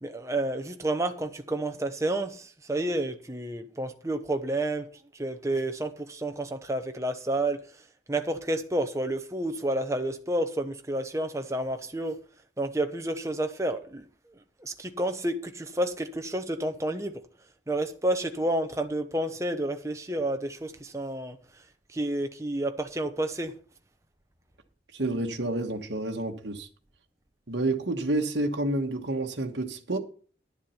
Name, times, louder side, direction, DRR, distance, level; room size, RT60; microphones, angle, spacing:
voice 1, 0.0-4.9 5.1-7.6 8.1-12.2 12.6-14.1 14.6-17.1 17.7-21.4 21.9-23.5, right 1 dB, 15° right, 1.0 m, -30 dB
voice 2, 24.9-26.7 27.5-30.0, right 2 dB, 70° right, 1.3 m, -29 dB
10.5 x 7.4 x 5.7 m
head